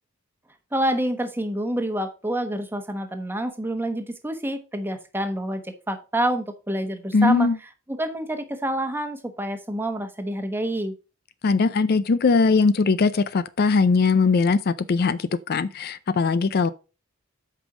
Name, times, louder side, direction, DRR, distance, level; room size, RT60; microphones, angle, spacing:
voice 1, 0.7-7.5 7.9-10.9, right 1 dB, 10° right, 1.1 m, -27 dB
voice 2, 7.1-7.6 11.4-16.7, left 4 dB, 45° left, 0.4 m, -20 dB
8.3 x 5.4 x 4.9 m
head